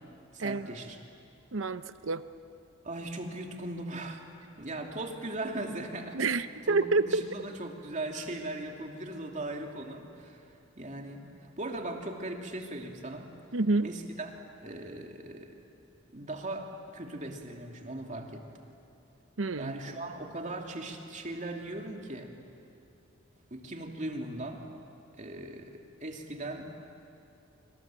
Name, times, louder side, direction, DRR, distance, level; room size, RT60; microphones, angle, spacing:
voice 1, 0.3-1.0 2.8-4.2 4.6-10.4 10.7-11.2 11.6-13.3 13.8-14.3 14.6-15.5 16.1-18.4 19.6-22.3 23.5-24.7 25.2-26.7, right 2 dB, 40° right, 2 dB, 2.7 m, -39 dB
voice 2, 1.5-2.2 6.1-7.2 13.5-13.9 19.4-19.7, right 3 dB, 90° right, 12 dB, 0.9 m, -28 dB
26.5 x 26.0 x 7.6 m, 2.8 s
head